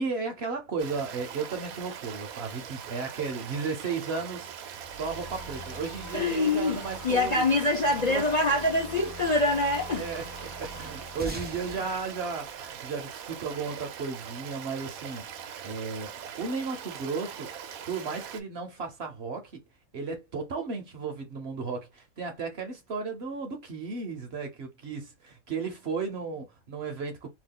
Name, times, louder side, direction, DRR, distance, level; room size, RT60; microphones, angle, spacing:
voice 1, 0.0-7.4 8.1-8.2 9.0-9.1 10.0-17.5 17.9-19.6 19.9-27.3, right 4 dB, 55° right, 0.9 m, -34 dB
Stream, 0.8-18.4, right 8 dB, 80° right, 1.1 m, -42 dB
sound 1, 4.8-11.2, left 1 dB, 75° left, 1.2 m, -44 dB
voice 2, 6.1-6.8 7.0-10.1, left 2 dB, 40° left, 0.6 m, -25 dB
sound 2, 11.2-14.0, right 1 dB, 15° right, 0.4 m, -42 dB
2.9 x 2.3 x 3.7 m
omnidirectional pair, 1.5 m